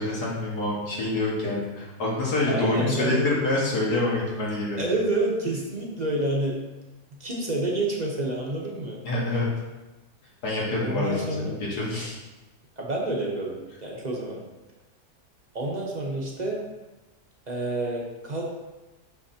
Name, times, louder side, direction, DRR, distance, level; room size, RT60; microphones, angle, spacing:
voice 1, 0.0-4.8 9.0-9.5 10.4-11.3 11.7-12.2, left 2 dB, 90° left, -5 dB, 2.1 m, -26 dB
voice 2, 2.5-3.3 4.8-6.6 7.2-9.0 10.8-11.5 12.8-13.6 13.8-14.4 15.5-16.6 17.5-18.5, right 2 dB, 35° right, -2 dB, 0.8 m, -28 dB
6.0 x 5.8 x 2.8 m, 1.1 s
omnidirectional pair, 1.6 m